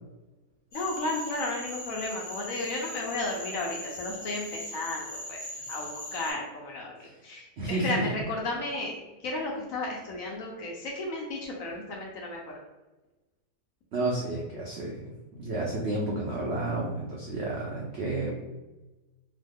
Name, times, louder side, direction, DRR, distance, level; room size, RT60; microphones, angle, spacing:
voice 1, 0.7-12.4, left 2 dB, 70° left, -1 dB, 0.9 m, -34 dB
Cricket / Frog, 0.7-6.3, left 1 dB, 25° left, 1.3 m, -40 dB
voice 2, 7.6-8.0 13.9-15.0 15.4-18.3, right 2 dB, 75° right, -3 dB, 0.6 m, -31 dB
3.0 x 2.1 x 3.4 m, 1.1 s
omnidirectional pair, 1.8 m